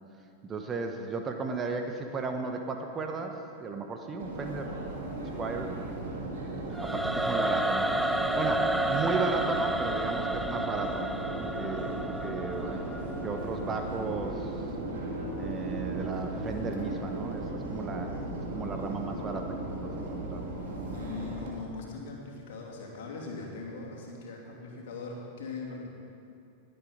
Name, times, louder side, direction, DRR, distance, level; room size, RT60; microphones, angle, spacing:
voice 1, 0.4-4.8 5.4-5.8 6.8-8.1 8.4-11.9 12.2-12.8 13.2-14.6 15.4-18.2 18.5-19.6 19.8-20.4, right 3 dB, 20° right, 5 dB, 1.1 m, -35 dB
Subway metro underground, 4.2-21.5, right 2 dB, 55° right, 2.5 m, -36 dB
Singing / Musical instrument, 6.7-13.8, right 1 dB, ahead, 0.6 m, -31 dB
voice 2, 20.9-25.9, left 3 dB, 55° left, -2 dB, 2.7 m, -40 dB
21.0 x 7.9 x 5.1 m, 2.6 s
figure-of-eight pair, 90°, 0 cm